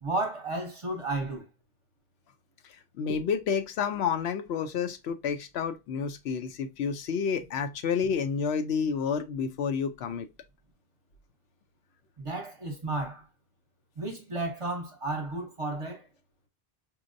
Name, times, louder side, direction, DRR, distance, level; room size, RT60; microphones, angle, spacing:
voice 1, 0.0-1.5 12.2-13.3 14.0-16.1, right 2 dB, 35° right, 0.8 m, -33 dB
voice 2, 3.0-10.3, left 6 dB, 80° left, 0.8 m, -30 dB
4.5 x 2.1 x 2.5 m
omnidirectional pair, 1.1 m